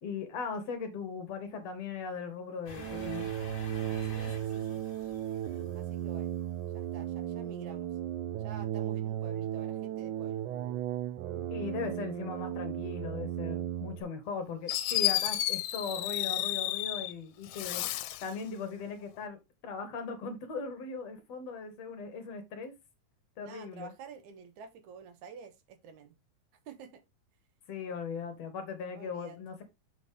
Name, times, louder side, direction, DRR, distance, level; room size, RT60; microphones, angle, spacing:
voice 1, 0.0-3.3 11.5-17.9 18.2-22.7 23.4-23.9 27.7-29.6, left 5 dB, 60° left, 2.1 m, -39 dB
sound 1, 2.7-6.6, left 5 dB, 40° left, 1.5 m, -48 dB
sound 2, 2.7-14.0, right 11 dB, 90° right, 2.2 m, -35 dB
voice 2, 4.0-4.8 5.7-6.4 6.7-7.9 8.4-10.4 23.4-26.2 26.7-27.0 29.0-29.4, right 6 dB, 75° right, 2.2 m, -49 dB
Fireworks, 14.3-14.4 14.7-17.1 17.5-18.3, left 15 dB, 80° left, 2.1 m, -31 dB
6.5 x 6.1 x 3.6 m
omnidirectional pair, 3.6 m